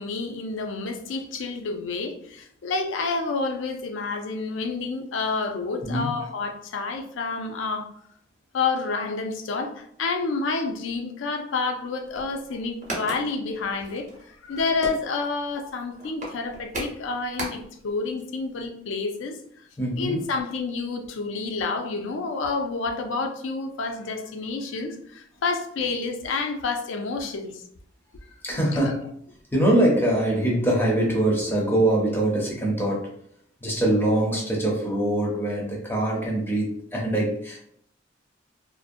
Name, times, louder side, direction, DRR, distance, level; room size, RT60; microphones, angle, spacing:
voice 1, 0.0-7.9 8.5-19.4 19.9-27.6 28.2-28.3, left 4 dB, 75° left, 0.4 m, -29 dB
sound 1, 12.0-17.9 18.2-18.3 18.5-18.6, right 1 dB, 40° right, 0.8 m, -37 dB
voice 2, 19.8-20.2 28.4-29.1 29.5-33.1 33.6-37.6, right 1 dB, 10° left, 0.5 m, -23 dB
2.5 x 2.0 x 2.5 m
head